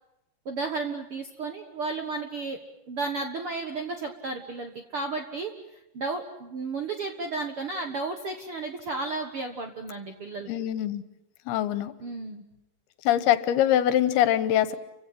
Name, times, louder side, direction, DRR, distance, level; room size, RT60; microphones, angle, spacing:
voice 1, 0.4-2.6 2.9-5.5 5.9-10.5 12.0-12.4, right 3 dB, 55° right, 5 dB, 1.6 m, -33 dB
voice 2, 10.5-11.0 11.5-11.9 13.1-14.8, left 11 dB, 75° left, 14 dB, 3.0 m, -23 dB
29.5 x 16.5 x 9.9 m, 0.90 s
omnidirectional pair, 4.6 m